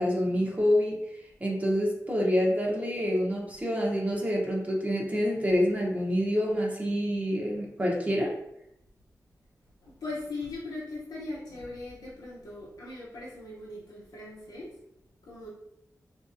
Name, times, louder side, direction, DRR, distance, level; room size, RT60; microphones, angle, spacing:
voice 1, 0.0-8.3, equal, 25° right, -2 dB, 0.8 m, -27 dB
voice 2, 9.8-14.7 15.2-15.5, left 2 dB, 90° left, -6 dB, 0.7 m, -39 dB
3.0 x 2.6 x 2.5 m, 0.81 s
cardioid pair, 45°, 6 cm